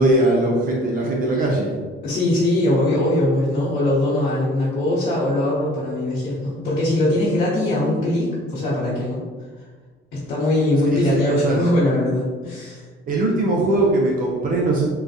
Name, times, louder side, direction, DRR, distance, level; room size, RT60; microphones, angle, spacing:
voice 1, 0.0-1.7 10.9-11.6 13.1-14.9, right 2 dB, 45° right, -2 dB, 0.5 m, -20 dB
voice 2, 2.0-9.2 10.1-12.8, left 1 dB, 55° left, -10 dB, 1.1 m, -21 dB
3.8 x 2.3 x 2.6 m, 1.5 s
cardioid pair, 140°, 21 cm